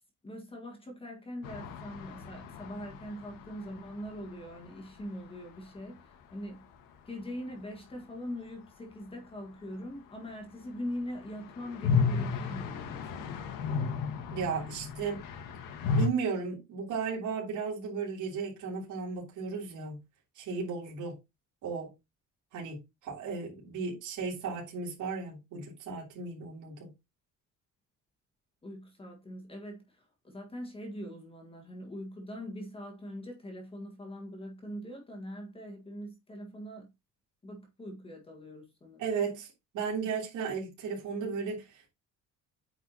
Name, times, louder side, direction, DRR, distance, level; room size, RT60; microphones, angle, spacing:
voice 1, 0.2-6.7 7.0-13.4 28.6-36.9 37.4-39.0, equal, 15° left, 1.6 m, -42 dB
sound 1, 1.4-5.2 5.5-5.6 5.8-5.9 10.9-16.1, left 5 dB, 90° left, 1.5 m, -33 dB
voice 2, 14.3-15.2 15.9-20.0 20.3-21.1 21.6-21.9 22.5-26.9 39.0-41.9, right 5 dB, 65° right, 3.2 m, -35 dB
8.9 x 4.9 x 2.8 m
cardioid pair, 165°, 32 cm